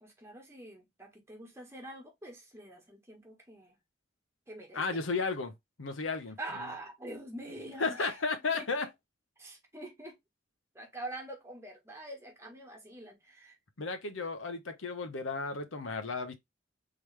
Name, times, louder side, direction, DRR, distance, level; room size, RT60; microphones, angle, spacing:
voice 1, 0.0-3.8 4.5-5.0 6.4-8.2 8.5-8.7 9.4-10.2 10.7-13.6, right 1 dB, 15° right, 1.4 m, -45 dB
voice 2, 4.7-5.5 5.8-6.4 7.8-8.9 13.8-16.3, left 4 dB, 85° left, 0.9 m, -33 dB
3.8 x 3.1 x 3.2 m
head